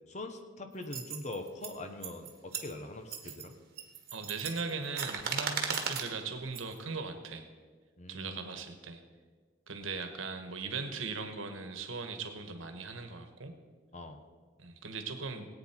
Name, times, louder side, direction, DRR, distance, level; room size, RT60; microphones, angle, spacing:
voice 1, 0.1-3.6 8.0-8.6 13.9-14.2, left 2 dB, 35° left, 6 dB, 1.0 m, -43 dB
sound 1, 0.8-1.7 2.0-2.7 3.1-3.5 3.8-6.1 6.6-6.8, right 6 dB, 50° right, 1.4 m, -36 dB
voice 2, 4.1-7.5 8.1-9.0 9.7-13.5 14.6-15.5, right 4 dB, 75° right, 7 dB, 1.3 m, -39 dB
18.5 x 8.9 x 4.4 m, 1.5 s
head